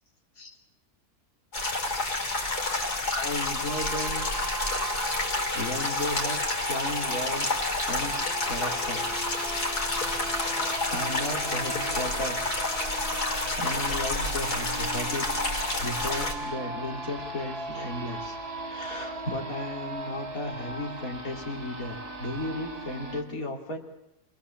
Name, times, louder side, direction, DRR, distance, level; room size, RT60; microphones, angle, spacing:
sound 1, 1.5-16.3, left 2 dB, 85° left, 4.0 m, -29 dB
voice 1, 3.1-4.3 5.1-5.2 5.5-6.4 6.7-8.2 8.5-9.3 10.1-12.4 13.6-15.3 15.8-23.8, left 1 dB, 60° left, 1 dB, 3.5 m, -35 dB
sound 2, 3.7-23.2, right 1 dB, 80° right, 3.2 m, -37 dB
28.5 x 20.5 x 7.2 m, 0.89 s
omnidirectional pair, 1.6 m